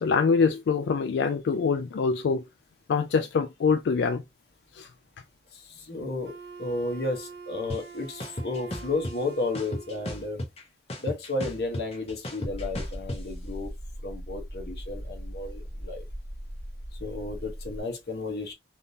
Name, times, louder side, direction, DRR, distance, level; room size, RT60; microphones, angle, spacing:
voice 1, 0.0-2.4 2.9-4.2 4.7-4.9, left 5 dB, 85° left, 0.3 m, -24 dB
voice 2, 5.5-6.3 6.6-10.4 11.0-13.7 14.0-16.1 17.0-18.5, left 2 dB, 60° left, 1.0 m, -33 dB
Wind instrument woodwind instrument, 6.2-10.4, right 5 dB, 65° right, 0.8 m, -45 dB
sound 1, 7.7-7.8 8.2-9.1 9.5-10.6 10.9-13.2, left 1 dB, 35° left, 0.9 m, -34 dB
sound 2, 12.4-17.8, equal, 15° right, 1.4 m, -39 dB
3.5 x 2.6 x 2.7 m
head